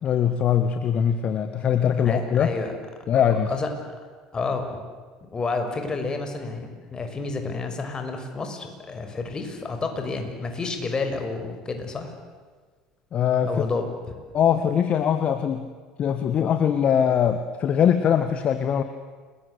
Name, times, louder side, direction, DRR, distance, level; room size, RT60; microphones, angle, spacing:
voice 1, 0.0-2.5 3.1-3.5 13.1-13.6 14.3-15.7 16.0-18.8, left 8 dB, 45° left, 9 dB, 1.8 m, -22 dB
voice 2, 2.0-2.7 3.5-3.7 4.0-4.1 4.3-4.8 5.3-12.2 13.5-13.8, left 4 dB, 25° left, 5 dB, 6.1 m, -30 dB
30.0 x 22.0 x 8.4 m, 1.5 s
hypercardioid pair, 70°, 3 cm